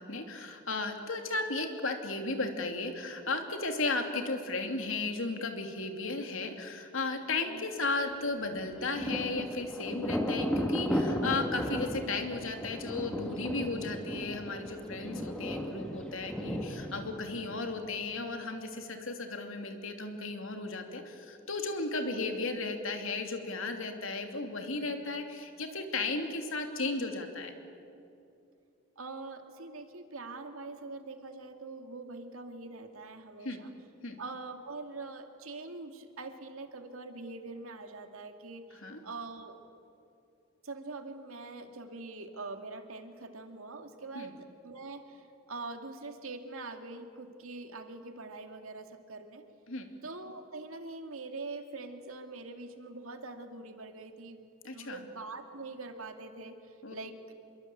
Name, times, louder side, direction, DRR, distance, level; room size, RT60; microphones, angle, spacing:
voice 1, 0.0-27.5 33.4-33.6 34.0-34.2 38.7-39.0 44.1-44.3 49.7-49.9 54.6-55.0 56.8-56.9, left 3 dB, 70° left, 5 dB, 2.9 m, -35 dB
Thunder, 8.5-18.0, equal, 5° left, 2.1 m, -35 dB
voice 2, 15.0-15.4 22.0-22.1 29.0-33.7 34.2-39.6 40.6-49.4 50.0-57.3, right 3 dB, 80° right, 6 dB, 2.3 m, -44 dB
26.0 x 23.0 x 8.6 m, 2.6 s
head